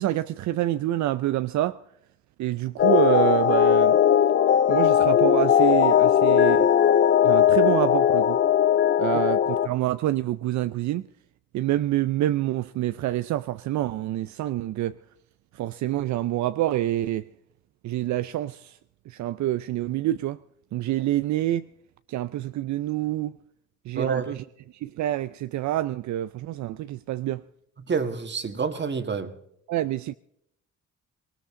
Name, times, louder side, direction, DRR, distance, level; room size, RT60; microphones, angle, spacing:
voice 1, 0.0-1.8 2.4-4.0 4.7-6.7 7.2-8.4 9.0-11.1 11.5-14.9 15.5-17.3 17.8-18.8 19.1-20.4 20.7-21.7 22.1-23.4 23.9-27.4 29.7-30.1, right 14 dB, 70° right, 0.5 m, -27 dB
sound 1, 2.8-9.7, left 9 dB, 40° left, 0.5 m, -19 dB
voice 2, 23.9-24.3 27.8-29.3, right 5 dB, 35° right, 1.7 m, -28 dB
19.5 x 19.0 x 3.7 m
cardioid pair, 90°, 30 cm